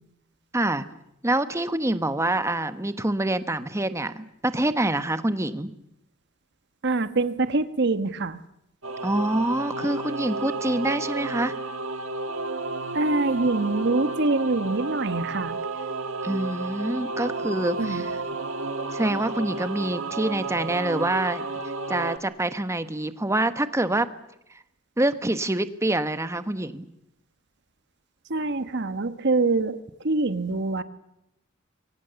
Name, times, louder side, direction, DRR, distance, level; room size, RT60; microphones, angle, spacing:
voice 1, 0.5-0.8 1.2-5.7 9.0-11.5 16.2-18.2 18.9-21.4 21.9-24.1 25.0-26.8, right 1 dB, 15° right, 11 dB, 1.1 m, -26 dB
voice 2, 6.8-8.4 12.9-15.5 17.8-18.0 28.3-29.8 30.0-30.8, right 3 dB, 60° right, 11 dB, 1.3 m, -24 dB
Singing / Musical instrument, 8.8-22.2, right 3 dB, 75° right, 2.1 m, -32 dB
27.5 x 23.5 x 7.0 m, 0.83 s
head